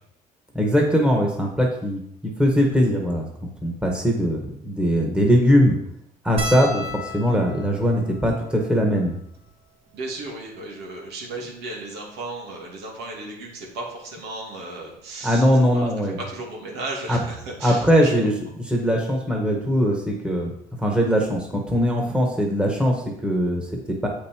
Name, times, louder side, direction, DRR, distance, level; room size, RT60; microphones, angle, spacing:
voice 1, 0.5-3.3 3.6-5.7 6.2-9.1 15.2-16.2 17.1-17.2 17.6-18.3 18.7-20.5 20.8-24.1, equal, 5° right, 0 dB, 1.6 m, -21 dB
sound 1, 6.4-11.0 11.7-11.8 12.0-12.2 13.5-13.7 15.1-15.2 15.5-15.7, left 1 dB, 35° right, 1.5 m, -36 dB
voice 2, 9.9-15.5 15.7-18.2, right 2 dB, 85° right, -2 dB, 2.4 m, -34 dB
7.7 x 5.5 x 4.5 m, 0.74 s
cardioid pair, 110°, 17 cm